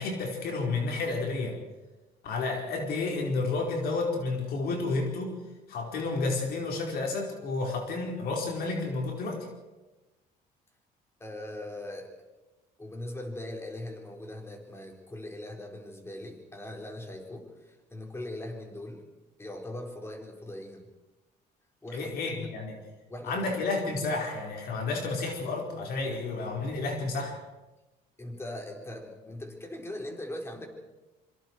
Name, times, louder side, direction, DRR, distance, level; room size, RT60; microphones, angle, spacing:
voice 1, 0.0-1.6 2.2-5.4 5.7-9.5 21.9-22.8 23.2-27.3, left 3 dB, 65° left, 1 dB, 4.6 m, -31 dB
voice 2, 11.2-12.1 12.8-19.1 19.4-20.9 21.8-22.5 23.1-23.6 28.2-30.7, left 1 dB, 15° left, 2 dB, 4.5 m, -40 dB
26.0 x 24.5 x 4.7 m, 1.1 s
cardioid pair, 110°, 17 cm